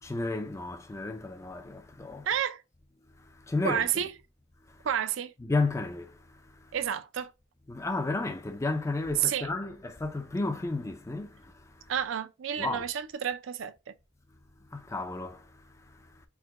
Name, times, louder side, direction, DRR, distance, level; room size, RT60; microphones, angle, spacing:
voice 1, 0.0-2.3 3.1-3.9 4.7-4.9 5.4-6.7 7.7-11.9 12.6-12.9 14.6-16.3, left 3 dB, 15° left, 0.4 m, -33 dB
voice 2, 2.3-2.6 3.6-4.1 4.8-5.3 6.7-7.3 9.2-9.5 11.9-13.9, right 9 dB, 70° right, 0.4 m, -30 dB
4.7 x 2.1 x 3.6 m
head